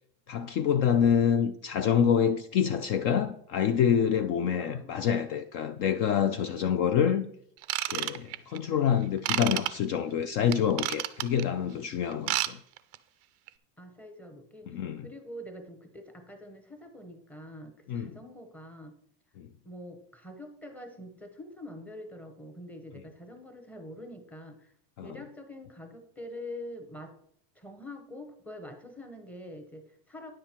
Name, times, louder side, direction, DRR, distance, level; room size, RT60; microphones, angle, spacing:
voice 1, 0.3-7.2 7.9-12.6 14.7-15.1 17.9-18.2 19.4-19.5 25.0-25.2, left 8 dB, 45° left, 0.4 m, -27 dB
Ratchet pawl / Tools, 7.6-8.6 9.2-9.7 10.5-11.4 12.1-12.5 12.8-13.0 13.5-13.6, right 16 dB, 35° right, 0.4 m, -30 dB
voice 2, 13.8-18.9 19.6-27.1 27.5-30.3, left 1 dB, 5° left, 0.8 m, -45 dB
10.0 x 7.6 x 4.3 m
cardioid pair, 175°, 43 cm